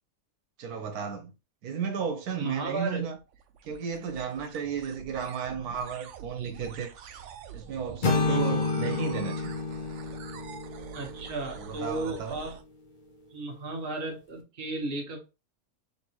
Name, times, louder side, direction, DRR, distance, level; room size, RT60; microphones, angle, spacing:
voice 1, 0.6-1.3 1.6-3.2 3.6-7.2 7.5-9.5 11.6-12.4, right 7 dB, 85° right, 1.3 m, -34 dB
voice 2, 2.3-3.0 8.2-8.6 10.9-12.6 13.3-15.3, right 2 dB, 40° right, 1.3 m, -35 dB
sound 1, 2.8-12.6, right 7 dB, 65° right, 0.8 m, -46 dB
sound 2, 8.0-12.0, left 3 dB, 40° left, 0.8 m, -30 dB
4.1 x 3.2 x 2.9 m
omnidirectional pair, 1.6 m